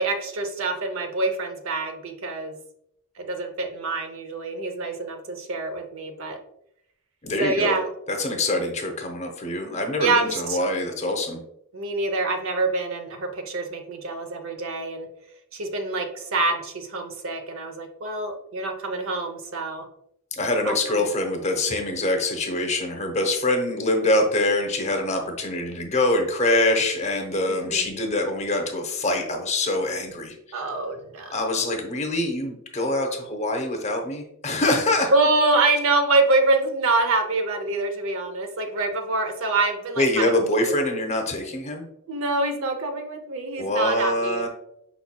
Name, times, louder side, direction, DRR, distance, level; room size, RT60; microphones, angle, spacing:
voice 1, 0.0-2.6 3.2-6.4 7.4-7.9 10.0-10.6 11.1-11.3 11.7-15.1 15.5-19.9 20.6-21.0 27.5-27.9 30.5-31.7 35.1-40.3 40.6-40.9 42.1-44.5, right 2 dB, 65° right, 6 dB, 0.6 m, -26 dB
voice 2, 7.2-7.8 8.1-11.4 20.4-30.3 31.3-35.1 40.0-41.8 43.6-44.5, left 2 dB, 30° left, 3 dB, 0.7 m, -24 dB
5.5 x 4.2 x 2.2 m, 0.77 s
head